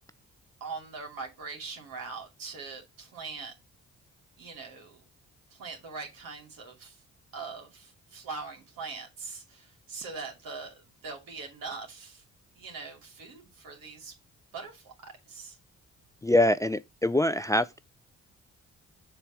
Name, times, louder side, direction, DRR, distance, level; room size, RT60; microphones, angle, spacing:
voice 1, 0.6-3.5 4.4-5.0 5.5-7.0 7.3-12.2 12.6-14.1 14.5-15.6, right 4 dB, 80° right, 2.6 m, -42 dB
voice 2, 16.2-17.8, left 1 dB, 10° left, 0.4 m, -24 dB
6.9 x 3.4 x 6.1 m
supercardioid pair, 50°, 34 cm